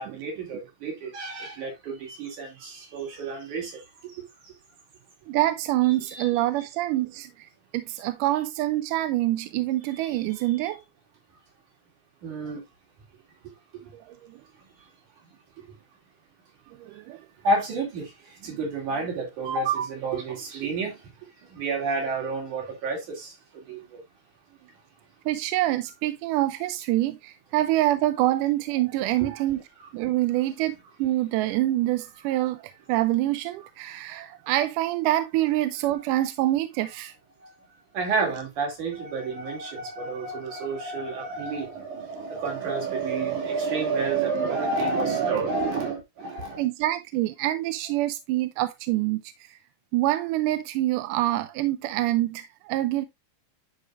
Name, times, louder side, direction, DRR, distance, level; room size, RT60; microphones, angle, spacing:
voice 1, 0.0-3.7 4.0-4.1 6.1-6.3 12.2-12.6 17.4-18.1 18.4-21.0 21.5-24.0 37.9-46.7, right 4 dB, 60° right, 4.1 m, -29 dB
voice 2, 5.3-7.5 7.7-10.8 13.9-14.4 16.8-17.2 25.3-29.6 29.9-37.1 46.6-49.2 49.5-49.6 49.9-53.1, right 15 dB, 80° right, 2.0 m, -26 dB
10.5 x 4.9 x 2.5 m
omnidirectional pair, 4.0 m